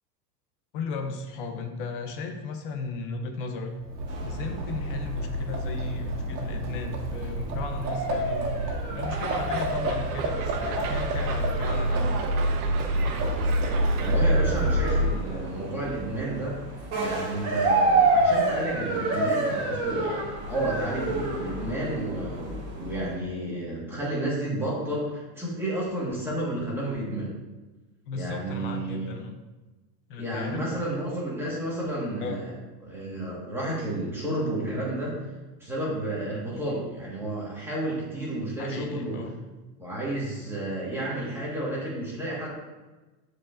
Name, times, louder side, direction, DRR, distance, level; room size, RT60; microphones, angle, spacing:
voice 1, 0.7-3.7 4.2-8.6 8.9-12.1 20.0-20.2 28.1-29.4 30.1-30.7 32.2-32.5 38.6-39.4, left 3 dB, 35° left, 5 dB, 0.5 m, -35 dB
Livestock farm animals working animals, 3.7-15.4, right 1 dB, 80° right, 1.9 m, -28 dB
sound 1, 4.1-23.2, right 2 dB, 30° right, 1.3 m, -30 dB
sound 2, 9.1-14.2, right 5 dB, 60° right, 1.0 m, -37 dB
voice 2, 14.0-16.6 17.0-20.2 20.5-27.3 28.1-29.2 30.2-32.5 32.8-35.1 35.6-39.2 39.8-42.5, right 1 dB, 5° right, -6 dB, 1.5 m, -31 dB
14.0 x 4.7 x 2.5 m, 1.2 s
supercardioid pair, 175°, 49 cm